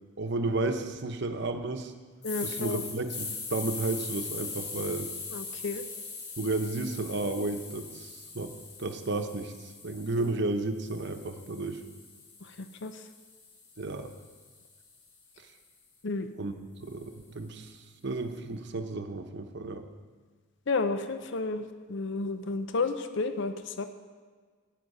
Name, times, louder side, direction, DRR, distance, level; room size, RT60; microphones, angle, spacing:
voice 1, 0.2-1.9 2.4-5.1 6.4-8.5 8.8-11.8 13.8-14.1 16.4-16.5 16.8-17.8 18.0-19.8, right 2 dB, 55° right, 7 dB, 0.9 m, -32 dB
sound 1, 2.2-10.3 10.8-15.0, left 4 dB, 80° left, 3.7 m, -41 dB
voice 2, 2.2-2.8 5.3-5.8 10.2-10.3 12.4-13.0 16.0-16.3 20.7-23.8, left 3 dB, 60° left, 9 dB, 0.6 m, -32 dB
12.5 x 9.3 x 5.4 m, 1.5 s
head